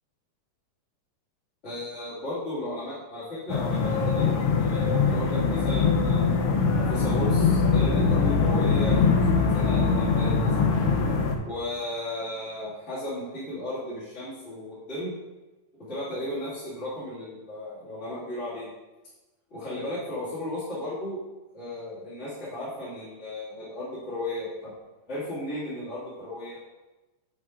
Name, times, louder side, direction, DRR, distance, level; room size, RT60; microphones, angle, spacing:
voice 1, 1.6-6.4 6.9-10.7 11.4-15.2 15.9-18.7 19.5-21.2 21.5-24.7 25.1-26.6, left 1 dB, 25° left, -12 dB, 2.2 m, -35 dB
sound 1, 3.5-11.4, left 4 dB, 85° left, 1.2 m, -22 dB
8.4 x 6.2 x 2.5 m, 1.1 s
omnidirectional pair, 3.4 m